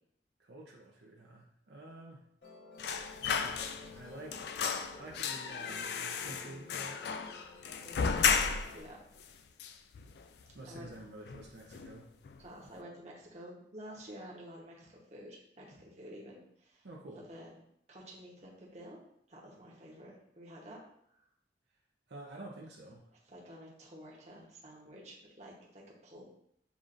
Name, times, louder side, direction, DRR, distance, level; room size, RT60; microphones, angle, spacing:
voice 1, 0.4-2.2 3.2-4.4 5.0-7.1 10.5-12.1 16.8-17.2 22.1-23.0, right 2 dB, 70° right, -2 dB, 0.6 m, -49 dB
Musical instrument, 2.4-8.8, left 3 dB, 90° left, 1.5 m, -53 dB
sound 1, 2.8-4.0 4.3-8.8 9.2-9.3 9.6-10.4 10.7-10.9 11.3-11.9 12.2-12.4, left 6 dB, 65° left, 0.3 m, -34 dB
voice 2, 7.8-8.4 8.7-9.0 10.7-10.9 12.4-17.6 17.9-19.0 19.3-20.8 23.2-26.2, equal, 40° right, -4 dB, 1.0 m, -50 dB
7.1 x 2.5 x 2.5 m, 0.73 s
head